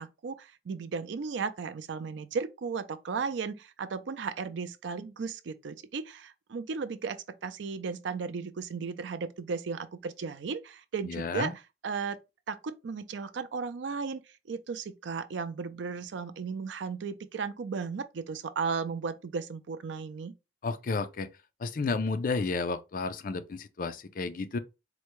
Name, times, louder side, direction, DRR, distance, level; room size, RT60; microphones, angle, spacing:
voice 1, 0.0-11.5 11.8-12.2 12.5-14.2 14.5-20.3, right 5 dB, 80° right, 0.4 m, -35 dB
voice 2, 11.0-11.5 20.6-21.3 21.6-24.6, left 4 dB, 50° left, 0.4 m, -32 dB
4.4 x 2.2 x 3.0 m
head